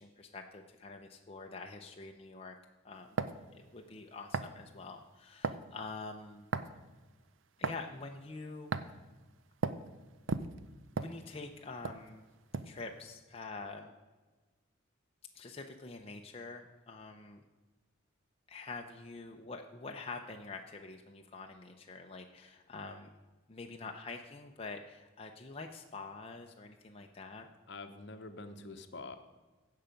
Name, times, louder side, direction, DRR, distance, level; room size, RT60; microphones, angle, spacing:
voice 1, 0.0-2.6 2.8-3.2 3.5-6.5 7.6-9.0 11.0-12.3 12.6-13.9 15.3-17.4 18.5-23.1 23.5-27.5, left 3 dB, 30° left, 3 dB, 0.6 m, -46 dB
sound 1, 3.2-3.4 4.3-4.6 5.4-5.7 6.5-6.8 7.6-7.8 8.7-9.0 9.6-9.8 10.3-11.5 11.8-12.0 12.5-12.8, right 4 dB, 75° right, 0.5 m, -35 dB
voice 2, 27.7-29.2, left 3 dB, 60° left, 8 dB, 0.8 m, -46 dB
16.0 x 5.7 x 5.1 m, 1.3 s
head